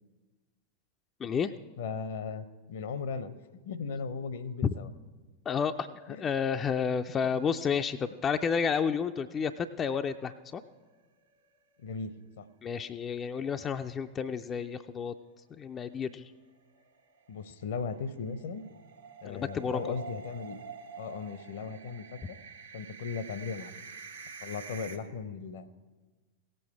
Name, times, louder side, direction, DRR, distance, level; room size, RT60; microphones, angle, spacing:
voice 1, 1.2-1.5 4.6-4.7 5.5-10.6 12.6-15.1 15.6-16.3 19.2-20.0, left 6 dB, 25° left, 7 dB, 0.3 m, -31 dB
voice 2, 1.8-3.4 3.6-4.9 6.1-6.3 11.8-12.5 17.3-18.6 19.2-20.6 21.0-22.4 22.7-23.8 24.4-25.7, left 5 dB, 60° left, 14 dB, 0.7 m, -37 dB
sound 1, 10.0-10.9 11.3-11.4 11.7-11.8 15.9-25.0, right 5 dB, 70° right, 1.1 m, -47 dB
17.0 x 7.7 x 4.8 m, 1.3 s
figure-of-eight pair, 90°, 0 cm